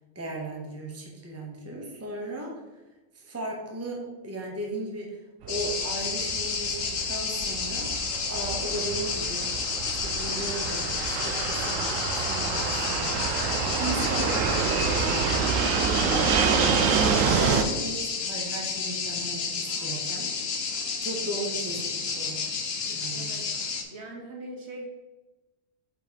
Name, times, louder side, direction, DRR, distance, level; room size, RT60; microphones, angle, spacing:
voice 1, 0.1-2.5 3.1-5.2 5.4-8.0 8.3-9.5 9.9-13.3 13.8-20.5 21.0-22.4 22.8-23.3, right 2 dB, 15° right, -1 dB, 0.9 m, -36 dB
Fixed-wing aircraft airplane, 5.4-17.6, right 6 dB, 80° right, 1.0 m, -27 dB
sound 1, 5.5-23.8, left 5 dB, 55° left, 1.0 m, -31 dB
voice 2, 23.1-23.5 23.9-24.9, right 1 dB, 60° right, 1 dB, 1.2 m, -41 dB
5.1 x 4.3 x 5.1 m, 1.1 s
omnidirectional pair, 1.3 m